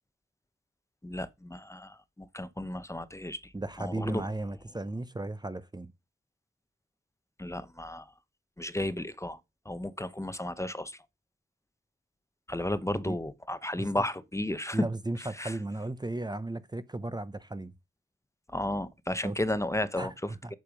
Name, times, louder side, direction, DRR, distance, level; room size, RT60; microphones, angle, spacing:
voice 1, 1.0-3.5 3.8-4.3 7.4-8.1 8.6-9.4 9.6-11.0 12.5-14.8 15.4-15.6 18.5-20.5, left 1 dB, 15° left, 0.9 m, -33 dB
voice 2, 3.5-5.9 12.9-13.2 13.8-13.9 14.7-17.7 19.2-19.4 19.9-20.1 20.4-20.5, right 2 dB, 20° right, 0.7 m, -35 dB
7.8 x 6.8 x 5.1 m
wide cardioid pair, 75°, 21 cm